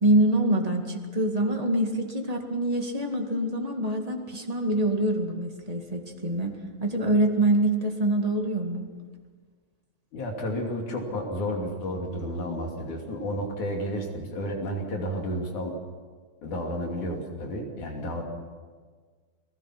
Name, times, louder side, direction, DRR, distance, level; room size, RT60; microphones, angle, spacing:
voice 1, 0.0-6.5 6.8-8.9, right 1 dB, 15° right, 2 dB, 1.4 m, -25 dB
voice 2, 10.1-15.8 16.4-18.2, equal, 65° left, 1 dB, 4.3 m, -31 dB
29.0 x 19.0 x 6.0 m, 1.5 s
omnidirectional pair, 3.8 m